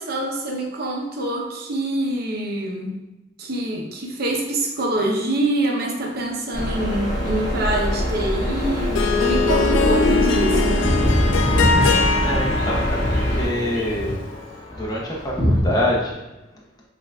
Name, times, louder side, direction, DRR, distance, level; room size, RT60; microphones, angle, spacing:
voice 1, 0.0-2.9 3.4-10.9, right 1 dB, 55° right, 0 dB, 0.7 m, -25 dB
sound 1, 6.5-13.5, equal, 55° left, 1.4 m, -24 dB
sound 2, 6.6-6.8 7.3-15.6, equal, ahead, 1.4 m, -26 dB
Harp, 8.6-14.4, left 4 dB, 90° left, 0.3 m, -22 dB
voice 2, 12.2-14.2 14.7-16.2, left 1 dB, 20° left, -4 dB, 0.8 m, -26 dB
5.4 x 2.5 x 2.2 m, 1.0 s
head